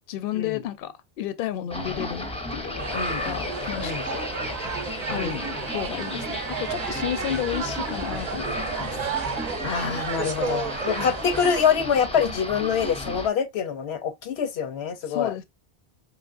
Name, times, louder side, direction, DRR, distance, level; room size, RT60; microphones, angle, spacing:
voice 1, 0.1-4.3 5.1-9.1 10.8-11.1 15.1-15.4, left 11 dB, 70° left, 0.7 m, -32 dB
sound 1, 1.7-13.3, left 1 dB, 5° left, 0.5 m, -34 dB
sound 2, 2.8-11.6, right 5 dB, 50° right, 0.6 m, -32 dB
voice 2, 5.1-5.4 9.6-15.3, left 7 dB, 85° left, 0.9 m, -25 dB
4.8 x 3.0 x 2.4 m
omnidirectional pair, 1.0 m